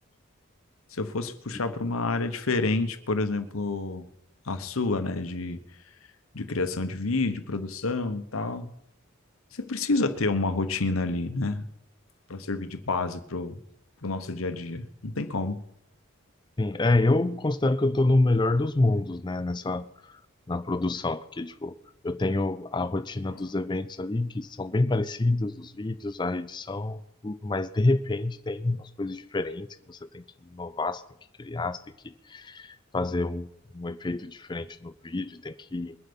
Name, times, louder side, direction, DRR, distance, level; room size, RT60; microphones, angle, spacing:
voice 1, 0.9-4.1 4.4-5.6 6.3-8.7 9.5-11.6 12.3-13.6 14.0-15.6 23.3-23.5, left 3 dB, 80° left, 1.1 m, -29 dB
voice 2, 16.6-19.9 20.5-21.7 22.0-31.0 31.4-36.0, left 2 dB, 20° left, 0.5 m, -28 dB
22.0 x 7.7 x 5.4 m
head